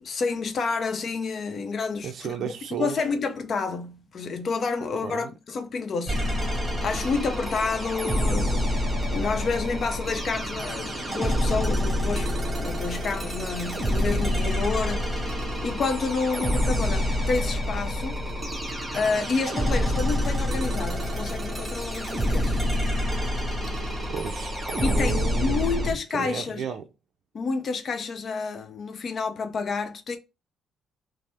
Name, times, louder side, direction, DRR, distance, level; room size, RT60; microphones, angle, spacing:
voice 1, 0.0-2.5 2.8-12.3 12.6-18.2 18.9-22.6 24.8-26.6 27.3-30.2, left 4 dB, 50° left, 0.7 m, -29 dB
voice 2, 2.0-3.1 5.0-5.3 24.1-26.9, right 7 dB, 60° right, 0.4 m, -33 dB
sound 1, 6.1-25.9, equal, 15° right, 1.2 m, -27 dB
3.2 x 2.1 x 4.2 m
cardioid pair, 90°, 0 cm